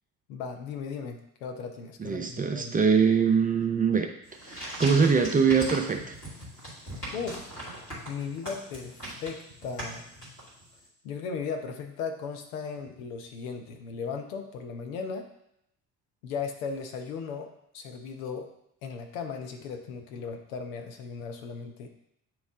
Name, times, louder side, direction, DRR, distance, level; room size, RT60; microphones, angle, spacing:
voice 1, 0.3-2.8 7.1-7.5 8.1-10.1 11.0-15.2 16.2-17.5 17.7-18.5 18.8-21.9, left 5 dB, 65° left, 4 dB, 0.9 m, -36 dB
voice 2, 2.0-4.1 4.5-6.2, right 6 dB, 20° right, 4 dB, 0.6 m, -23 dB
sound 1, 4.2-10.8, right 1 dB, 85° left, 2.3 m, -40 dB
9.2 x 3.1 x 3.6 m, 0.78 s
figure-of-eight pair, 55°, 45 cm